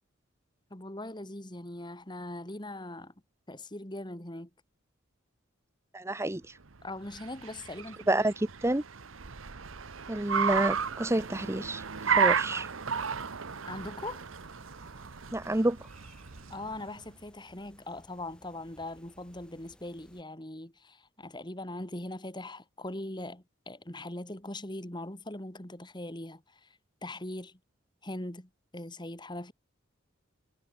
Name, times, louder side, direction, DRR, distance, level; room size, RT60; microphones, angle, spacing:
voice 1, 0.7-3.1 3.5-4.5 6.8-8.3 13.7-14.2 16.5-27.6 28.0-29.5, left 1 dB, 25° left, 2.6 m, -41 dB
voice 2, 5.9-6.4 8.1-8.3 8.6-8.8 10.1-11.8 12.2-12.7 15.3-15.8, right 1 dB, 15° right, 0.8 m, -28 dB
Car, 6.7-17.0, right 6 dB, 90° right, 1.1 m, -33 dB
sound 1, 12.0-20.2, equal, 5° left, 6.5 m, -60 dB
head